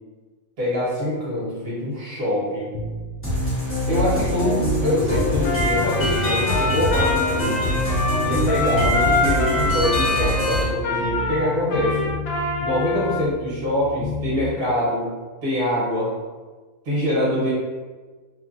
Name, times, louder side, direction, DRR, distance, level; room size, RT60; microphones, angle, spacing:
voice 1, 0.6-2.7 3.9-7.7 8.2-12.1 12.6-15.1 15.4-16.1 16.8-17.5, left 1 dB, 45° right, -7 dB, 1.2 m, -24 dB
sound 1, 2.7-5.4 5.7-11.5 11.7-14.4, left 3 dB, 65° left, 0.8 m, -32 dB
sound 2, 3.2-10.6, equal, 10° left, 0.8 m, -24 dB
Trumpet, 5.4-13.2, left 2 dB, 85° left, 1.1 m, -25 dB
3.0 x 2.4 x 2.5 m, 1.4 s
omnidirectional pair, 1.5 m